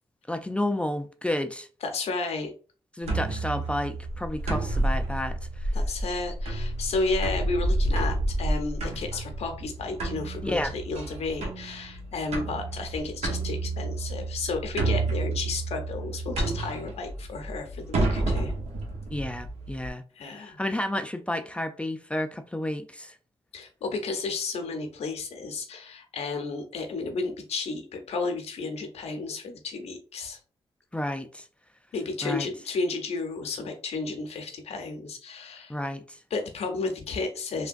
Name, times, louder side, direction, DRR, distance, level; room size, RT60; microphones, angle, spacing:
voice 1, 0.3-1.7 3.0-5.7 10.4-10.7 19.1-23.2 30.9-31.5 32.2-32.5 35.7-36.2, left 1 dB, 10° left, 0.4 m, -31 dB
voice 2, 1.8-2.5 5.7-18.5 20.2-20.6 23.5-30.4 31.9-35.7 36.3-37.7, left 3 dB, 75° left, 0.6 m, -32 dB
sound 1, 3.0-19.9, right 2 dB, 80° right, 0.9 m, -30 dB
3.3 x 2.2 x 2.5 m
cardioid pair, 60°, 11 cm